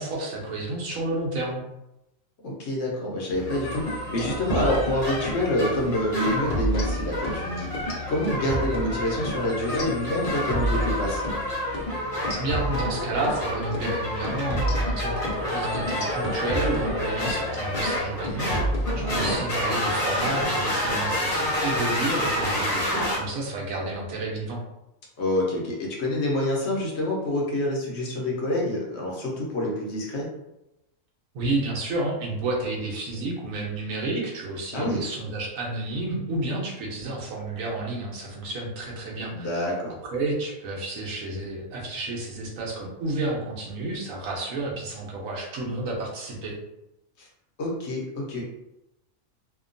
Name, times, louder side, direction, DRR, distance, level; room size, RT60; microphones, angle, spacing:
voice 1, 0.0-1.6 12.4-18.6 18.9-24.6 31.3-39.5 40.0-46.5, right 2 dB, 85° right, -2 dB, 1.1 m, -30 dB
voice 2, 2.4-7.7 8.1-11.2 18.9-19.4 25.2-30.3 34.7-35.0 39.3-39.9 47.2-47.3 47.6-48.4, left 1 dB, 60° left, -2 dB, 0.9 m, -27 dB
sound 1, 3.3-23.2, left 1 dB, 30° left, 0.8 m, -29 dB
sound 2, 3.6-5.4 5.7-5.9 6.2-7.4 7.7-11.4 11.7-11.9 12.2-13.4 13.7-13.9 14.2-17.4 17.7-18.0 18.2-19.4, equal, 80° left, 0.3 m, -30 dB
2.8 x 2.2 x 2.5 m, 0.91 s
omnidirectional pair, 1.4 m